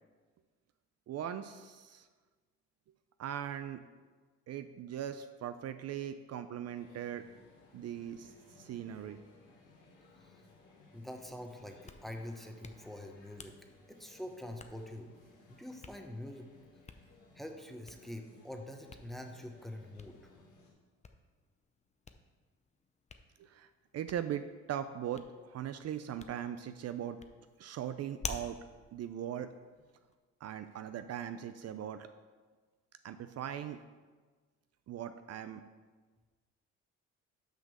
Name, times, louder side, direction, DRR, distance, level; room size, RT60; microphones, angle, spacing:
voice 1, 1.1-2.1 3.2-3.8 4.5-7.2 7.7-9.2 23.4-23.7 23.9-27.2 27.6-28.6 28.9-29.5 30.4-32.1 33.0-33.8 34.9-35.6, right 10 dB, 55° right, 10 dB, 0.4 m, -40 dB
sound 1, 6.7-20.7, left 3 dB, 90° left, 2.0 m, -61 dB
voice 2, 10.9-13.5 13.9-15.1 15.5-16.5 17.3-20.2, left 1 dB, ahead, 4 dB, 0.9 m, -45 dB
Hands, 11.6-30.1, left 4 dB, 25° left, 0.6 m, -52 dB
6.4 x 5.2 x 6.5 m, 1.4 s
cardioid pair, 90°, 30 cm